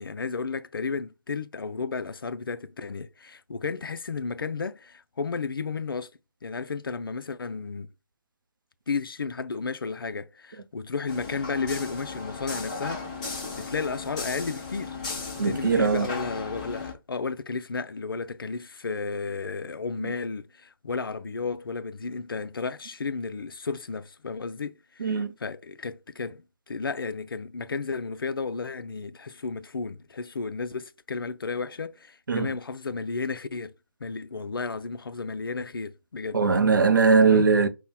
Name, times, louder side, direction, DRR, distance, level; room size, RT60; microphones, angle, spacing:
voice 1, 0.0-6.1 6.4-7.9 8.9-13.0 13.6-15.0 15.4-33.7 34.0-36.4 37.3-37.5, left 4 dB, 75° left, 0.4 m, -33 dB
sound 1, 11.1-16.9, left 4 dB, 20° left, 0.7 m, -36 dB
voice 2, 15.4-16.1 25.0-25.3 32.3-32.5 36.3-37.7, right 5 dB, 65° right, 0.6 m, -20 dB
5.5 x 2.1 x 2.2 m
figure-of-eight pair, 150°, 12 cm